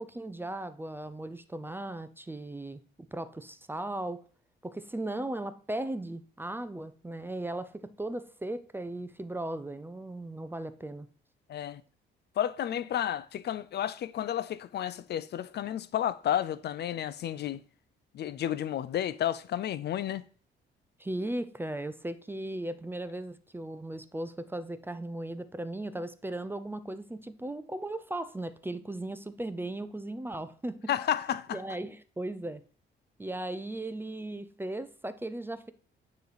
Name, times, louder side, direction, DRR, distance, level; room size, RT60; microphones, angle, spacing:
voice 1, 0.0-4.3 4.6-11.1 21.0-30.9 31.5-32.6 33.2-35.7, right 1 dB, 10° right, 0.4 m, -37 dB
voice 2, 11.5-11.8 12.4-17.6 18.1-20.2 30.9-31.6, left 11 dB, 55° left, 0.4 m, -31 dB
9.4 x 3.2 x 4.0 m
cardioid pair, 90°, 20 cm